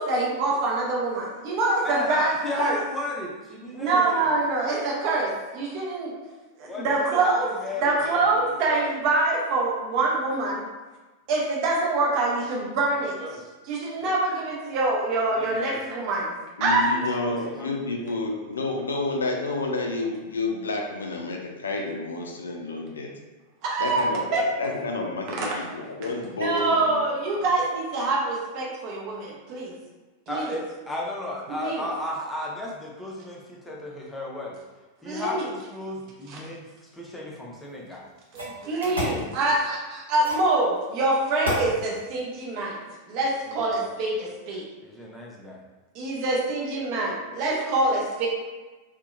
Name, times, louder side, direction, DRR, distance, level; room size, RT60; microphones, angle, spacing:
voice 1, 0.0-2.7 3.7-6.1 6.6-7.5 7.8-10.7 11.3-13.2 13.7-16.3 16.6-16.9 23.6-24.0 24.3-24.4 25.3-25.6 26.4-29.7 30.3-30.4 31.6-31.8 35.0-35.4 36.3-36.4 38.3-42.8 43.1-44.6 45.9-48.3, right 2 dB, 45° right, -3 dB, 0.6 m, -25 dB
voice 2, 2.4-4.3 6.6-8.8 13.0-13.5 14.0-14.1 15.3-15.8 16.7-17.7 18.0-18.2 30.3-34.6 35.0-38.0 38.8-39.2 43.5-43.7 44.8-45.6, left 1 dB, 5° left, -3 dB, 0.5 m, -35 dB
voice 3, 16.6-23.1 23.8-27.0, left 3 dB, 70° left, 1 dB, 0.3 m, -30 dB
sound 1, 37.6-37.7 38.3-39.2 40.2-40.5 41.4-41.7, equal, 75° right, 0.8 m, -30 dB
2.7 x 2.1 x 2.4 m, 1.2 s
figure-of-eight pair, 90°, 0 cm